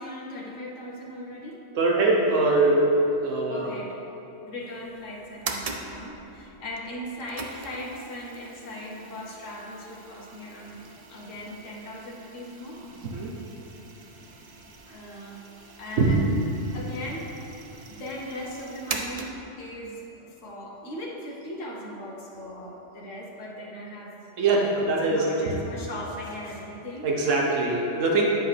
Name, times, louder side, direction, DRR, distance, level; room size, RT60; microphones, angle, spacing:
voice 1, 0.0-1.6 3.4-4.0 4.4-10.8 11.1-12.8 14.9-15.4 15.8-16.4 16.7-17.6 17.9-24.3 24.8-27.1 27.4-27.5, left 1 dB, 90° left, -4 dB, 1.4 m, -39 dB
voice 2, 1.7-2.9 3.2-3.7 13.0-13.4 16.0-16.3 24.4-25.5 27.0-28.3, right 2 dB, 80° right, -2 dB, 1.2 m, -22 dB
sound 1, 4.6-19.7, right 3 dB, 45° right, 0.5 m, -42 dB
9.8 x 6.2 x 3.3 m, 3.0 s
omnidirectional pair, 1.3 m